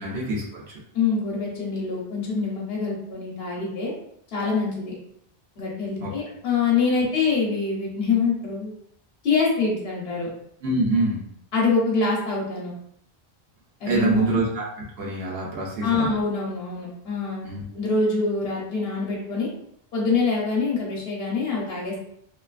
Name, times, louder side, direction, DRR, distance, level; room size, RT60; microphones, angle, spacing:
voice 1, 0.0-0.8 6.0-6.1 10.6-11.2 13.9-14.6 15.0-16.1 17.4-17.6, right 2 dB, 85° right, -3 dB, 1.0 m, -25 dB
voice 2, 0.9-3.9 4.3-4.9 5.6-8.7 9.2-10.3 11.5-12.7 13.8-14.3 15.8-19.5 19.9-22.1, left 4 dB, 75° left, -4 dB, 1.0 m, -25 dB
2.7 x 2.4 x 2.3 m, 0.69 s
omnidirectional pair, 1.0 m